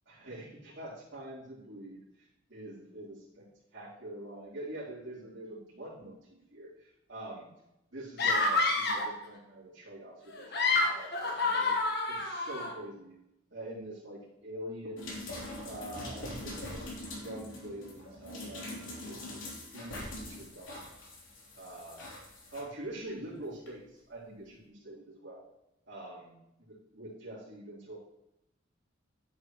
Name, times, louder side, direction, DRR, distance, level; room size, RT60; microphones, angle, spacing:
voice 1, 0.1-3.5 3.7-7.5 7.9-11.8 12.1-13.2 13.5-15.1 15.6-17.0 17.2-21.1 21.6-22.0 22.5-25.4 25.9-26.3 26.7-28.0, right 1 dB, 70° right, -10 dB, 3.6 m, -45 dB
sound 1, 8.2-9.2 10.3-12.7, left 3 dB, 55° left, 1.4 m, -28 dB
sound 2, 15.0-22.6 23.7-23.8, left 1 dB, 90° left, 3.3 m, -43 dB
10.5 x 8.5 x 3.1 m, 0.86 s
head